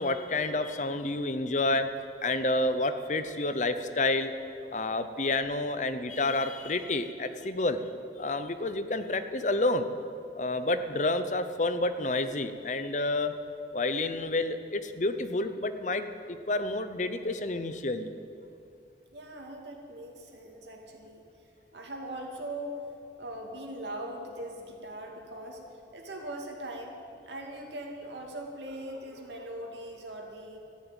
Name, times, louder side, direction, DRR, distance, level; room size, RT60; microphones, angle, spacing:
voice 1, 0.0-1.9 2.2-4.3 4.7-7.8 8.2-9.9 10.4-13.3 13.7-18.1, left 2 dB, 40° left, 10 dB, 0.7 m, -29 dB
voice 2, 19.1-21.3 21.7-22.8 23.2-25.6 25.9-27.0 27.3-30.6, right 1 dB, 85° right, 1 dB, 2.5 m, -40 dB
14.0 x 10.5 x 9.0 m, 2.6 s
head